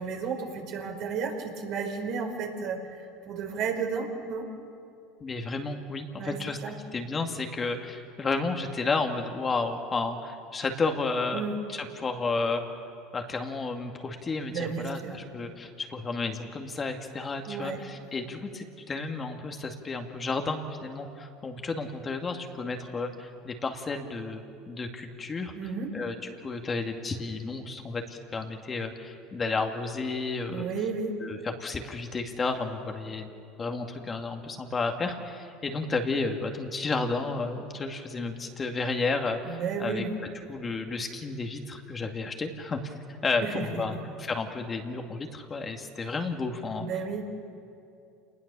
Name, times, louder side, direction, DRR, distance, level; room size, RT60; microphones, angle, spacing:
voice 1, 0.0-4.5 6.1-6.8 11.3-11.6 14.5-15.1 17.5-17.8 25.6-25.9 30.5-31.2 39.4-40.2 40.4-40.6 43.4-44.0 46.8-47.3, right 5 dB, 60° right, 3 dB, 4.6 m, -33 dB
voice 2, 5.2-6.6 6.9-11.4 11.7-12.6 13.1-25.5 25.9-26.1 26.4-30.7 31.2-33.3 33.6-40.0 40.5-42.8 43.2-46.8, left 3 dB, 30° left, 4 dB, 2.2 m, -32 dB
28.0 x 20.0 x 7.0 m, 2.5 s
hypercardioid pair, 90°, 0 cm